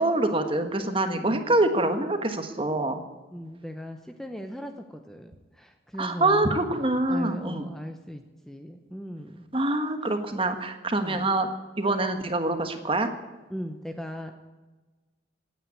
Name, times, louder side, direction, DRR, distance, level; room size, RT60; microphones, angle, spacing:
voice 1, 0.0-3.0 6.0-7.7 9.5-11.5 11.8-13.1, right 2 dB, 30° right, 7 dB, 1.4 m, -25 dB
voice 2, 1.1-1.5 3.3-6.6 7.1-9.5 11.0-11.3 13.5-14.3, equal, 5° left, 5 dB, 0.8 m, -38 dB
18.0 x 9.3 x 8.5 m, 1.2 s
head